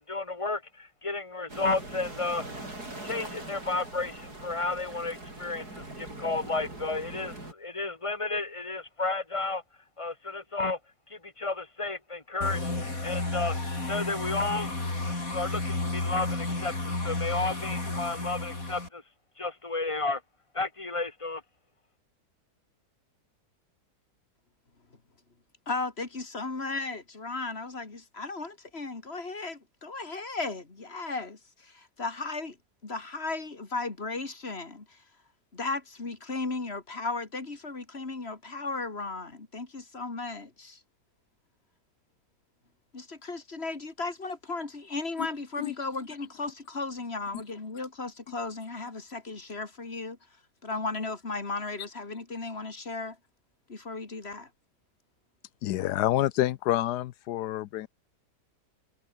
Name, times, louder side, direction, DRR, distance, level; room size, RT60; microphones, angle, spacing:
voice 1, 0.0-2.4 3.0-9.6 10.0-10.8 11.1-13.6 13.9-14.7 15.1-19.0 19.4-20.2 20.5-21.4, left 3 dB, 20° left, 2.6 m, -32 dB
sound 1, 1.5-7.5, right 2 dB, 70° right, 8.5 m, -42 dB
sound 2, 12.4-18.9, left 2 dB, 55° left, 5.7 m, -32 dB
voice 2, 25.7-32.6 32.8-34.9 35.5-40.8 42.9-50.2 50.6-53.2 53.7-54.5, left 3 dB, 40° left, 2.9 m, -35 dB
voice 3, 55.6-57.9, left 14 dB, 85° left, 1.3 m, -28 dB
omnidirectional pair, 1.7 m